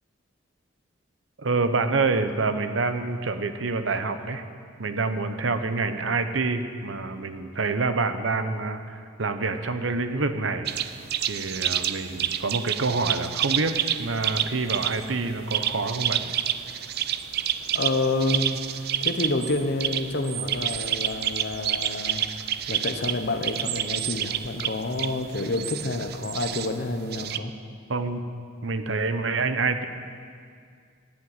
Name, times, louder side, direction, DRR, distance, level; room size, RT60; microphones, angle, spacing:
voice 1, 1.4-4.4 4.8-10.7 11.3-16.3 27.9-28.2 28.6-29.8, right 3 dB, 70° right, 9 dB, 0.8 m, -27 dB
sound 1, 10.7-27.4, right 10 dB, 55° right, 0.5 m, -29 dB
voice 2, 17.7-22.3 22.7-27.6, left 2 dB, 60° left, 7 dB, 1.0 m, -28 dB
12.5 x 9.0 x 7.9 m, 2.1 s
head